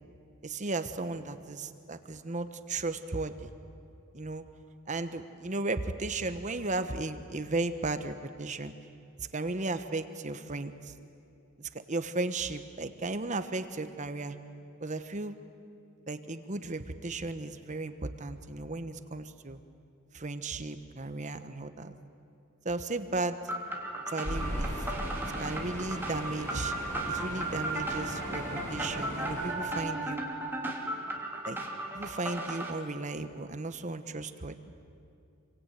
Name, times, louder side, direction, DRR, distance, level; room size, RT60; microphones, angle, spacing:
voice 1, 0.4-3.5 4.1-4.5 4.9-8.7 9.2-10.9 11.6-14.4 14.8-15.4 16.1-19.6 20.1-21.9 22.6-23.4 24.1-24.7 25.4-26.7 27.1-30.2 31.4-31.6 31.9-34.6, right 2 dB, 35° right, 10 dB, 1.1 m, -35 dB
sound 1, 23.5-32.7, right 2 dB, 10° right, 2.9 m, -36 dB
sound 2, 24.2-29.5, equal, 10° left, 5.6 m, -38 dB
27.0 x 24.0 x 9.2 m, 2.6 s
head